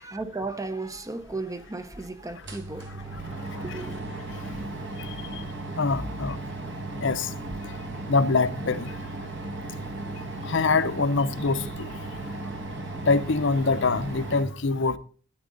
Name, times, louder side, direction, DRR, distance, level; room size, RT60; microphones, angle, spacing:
voice 1, 0.0-4.1, right 3 dB, 15° right, 0.7 m, -35 dB
sound 1, 1.2-1.3 1.9-2.0 2.3-14.4, right 2 dB, 55° right, 1.7 m, -36 dB
voice 2, 5.8-6.4 7.0-7.3 8.1-8.9 10.4-11.9 13.1-15.0, left 4 dB, 55° left, 0.7 m, -24 dB
13.0 x 9.3 x 3.9 m
head